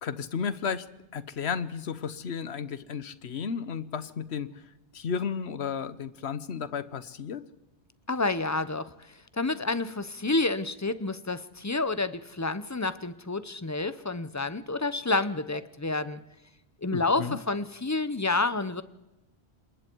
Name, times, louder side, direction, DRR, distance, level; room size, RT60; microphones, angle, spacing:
voice 1, 0.0-0.8 1.1-4.6 4.9-7.4 16.9-17.4, left 6 dB, 75° left, 15 dB, 1.2 m, -33 dB
voice 2, 8.1-8.9 9.3-16.2 16.8-18.8, left 3 dB, 20° left, 14 dB, 0.7 m, -29 dB
27.0 x 21.5 x 4.6 m, 0.96 s
omnidirectional pair, 1.1 m